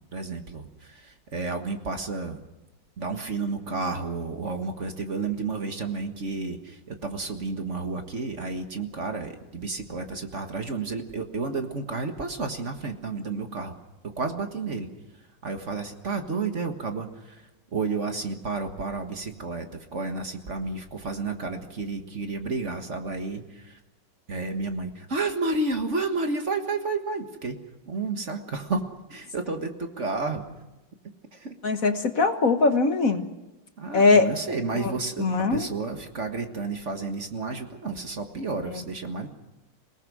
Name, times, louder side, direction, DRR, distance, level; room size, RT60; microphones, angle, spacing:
voice 1, 0.1-2.4 3.0-13.8 14.0-14.9 15.4-23.8 24.3-27.6 27.9-28.8 29.1-30.5 31.3-31.5 33.8-39.3, right 3 dB, 40° right, 5 dB, 1.8 m, -31 dB
voice 2, 31.6-33.2 33.9-34.3 34.8-34.9 35.2-35.7, left 3 dB, 50° left, 7 dB, 1.5 m, -21 dB
27.0 x 18.5 x 6.3 m, 1.0 s
omnidirectional pair, 2.0 m